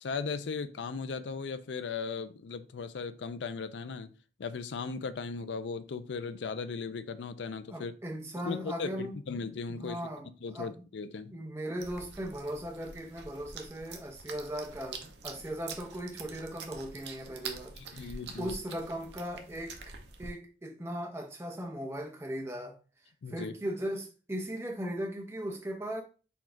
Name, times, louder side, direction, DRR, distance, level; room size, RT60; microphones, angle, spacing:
voice 1, 0.0-4.1 4.4-7.9 8.4-10.0 10.4-11.4 17.8-18.6 23.2-23.5, left 5 dB, 80° left, 0.4 m, -37 dB
voice 2, 7.7-9.1 9.7-10.8 11.3-22.8 23.3-26.0, equal, 15° right, 0.8 m, -38 dB
sound 1, 11.8-20.3, right 5 dB, 70° right, 0.6 m, -46 dB
4.3 x 2.4 x 4.4 m
head